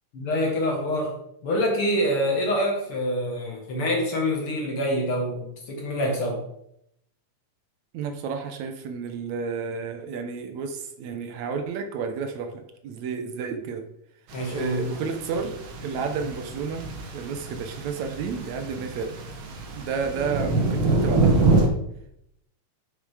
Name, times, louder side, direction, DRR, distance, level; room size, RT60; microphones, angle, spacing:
voice 1, 0.1-1.1 1.4-6.4 14.3-14.9, equal, 50° left, 1 dB, 2.2 m, -26 dB
voice 2, 7.9-13.9 14.5-19.1 19.7-21.5, right 5 dB, 75° right, 7 dB, 2.1 m, -31 dB
sound 1, 14.3-21.7, right 3 dB, 55° right, 1.7 m, -26 dB
8.7 x 5.7 x 4.9 m, 0.77 s
omnidirectional pair, 3.4 m